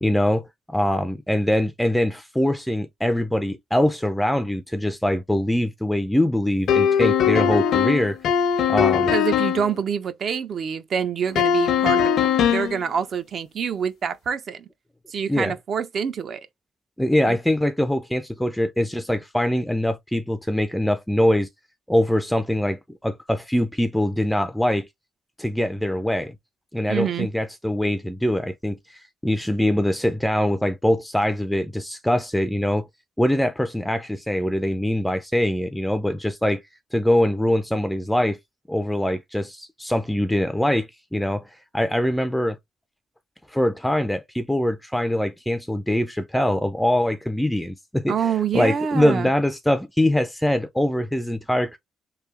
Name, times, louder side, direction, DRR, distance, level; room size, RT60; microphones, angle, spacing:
voice 1, 0.0-8.2 8.7-9.1 15.3-15.5 17.0-21.5 21.9-24.9 25.4-26.4 26.7-32.9 33.2-36.6 36.9-38.4 38.7-42.6 43.5-51.8, left 1 dB, 5° left, 0.4 m, -23 dB
sound 1, 6.7-9.7 11.3-12.8, left 8 dB, 70° left, 0.6 m, -20 dB
voice 2, 9.1-12.1 12.4-14.7 15.1-16.5 17.2-17.4 26.9-27.3 48.1-49.3, right 7 dB, 55° right, 0.6 m, -26 dB
3.3 x 2.7 x 3.3 m
cardioid pair, 90°, 0 cm